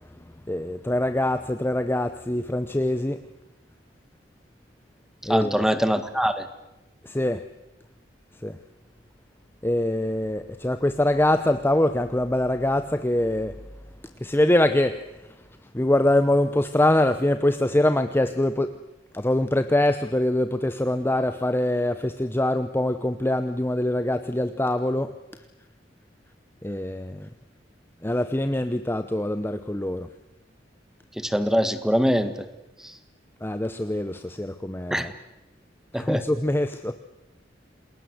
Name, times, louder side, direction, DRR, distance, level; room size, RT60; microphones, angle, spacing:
voice 1, 0.5-3.2 5.2-5.7 7.0-7.4 8.4-8.6 9.6-13.6 14.2-15.0 15.7-18.7 19.1-25.1 26.6-27.3 28.0-30.1 33.4-35.1 36.0-36.9, left 1 dB, 10° left, 9 dB, 0.8 m, -24 dB
voice 2, 5.3-6.5 31.2-32.3 34.9-35.1 35.9-36.2, equal, 5° right, 11 dB, 1.6 m, -23 dB
28.5 x 20.5 x 8.0 m, 0.97 s
head